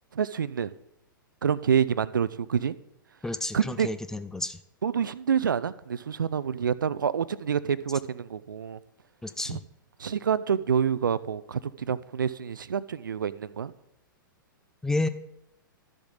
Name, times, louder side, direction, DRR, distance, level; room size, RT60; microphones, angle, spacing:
voice 1, 0.1-0.7 1.4-2.7 3.5-3.9 4.8-8.8 9.5-9.6 10.0-13.7, right 7 dB, 70° right, 0.4 m, -27 dB
voice 2, 3.2-4.6 9.2-9.6 14.8-15.1, left 2 dB, 5° left, 0.4 m, -30 dB
12.5 x 7.1 x 4.0 m
figure-of-eight pair, 105°, 11 cm